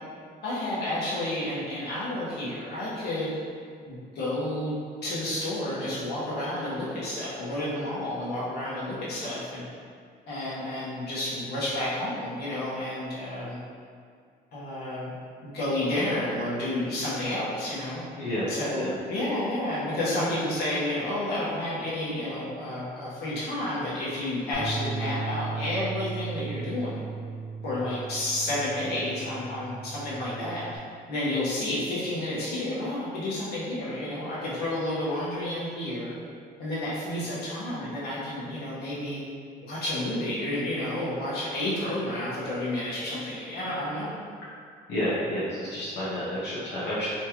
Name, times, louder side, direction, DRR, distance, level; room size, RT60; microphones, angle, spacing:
voice 1, 0.4-3.3 3.8-4.7 5.0-9.7 10.3-13.6 14.5-15.1 15.4-18.0 18.5-27.0 27.6-30.8 31.1-36.1 36.6-39.2 39.6-44.1, left 1 dB, 65° left, -8 dB, 1.3 m, -30 dB
voice 2, 18.2-18.5 18.8-18.9 44.9-47.1, equal, 85° left, -11 dB, 1.0 m, -30 dB
Bass guitar, 24.5-30.8, right 4 dB, 45° left, 1.4 m, -36 dB
3.6 x 3.2 x 3.0 m, 2.2 s
cardioid pair, 160°, 18 cm